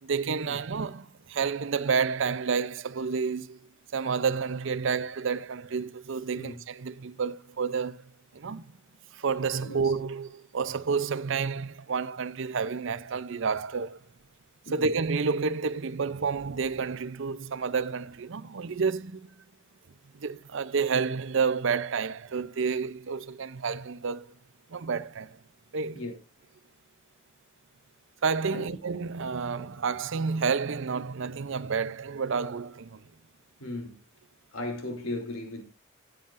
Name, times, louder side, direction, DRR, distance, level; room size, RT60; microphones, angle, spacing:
voice 1, 0.0-3.6 3.9-8.0 8.3-8.6 9.1-14.0 14.7-19.3 20.1-24.4 24.7-25.4 25.7-26.0 28.2-33.0, right 5 dB, 65° right, 0.6 m, -30 dB
voice 2, 33.6-34.0 34.5-35.6, left 2 dB, 85° left, 3.1 m, -36 dB
15.0 x 9.1 x 2.5 m
head